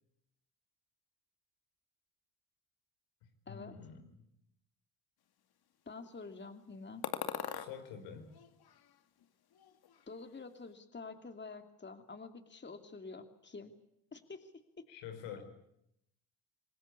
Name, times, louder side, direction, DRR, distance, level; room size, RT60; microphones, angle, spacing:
voice 1, 3.5-4.1 7.5-8.3 14.9-15.4, left 7 dB, 85° left, 6 dB, 5.0 m, -47 dB
voice 2, 5.9-7.0 10.1-13.7 14.1-14.5, left 4 dB, 25° left, 7 dB, 2.8 m, -48 dB
sound 1, 7.0-7.7 8.3-9.3 9.5-10.3, left 9 dB, 60° left, 2.5 m, -42 dB
27.0 x 20.5 x 8.5 m, 0.77 s
supercardioid pair, 65°, 42 cm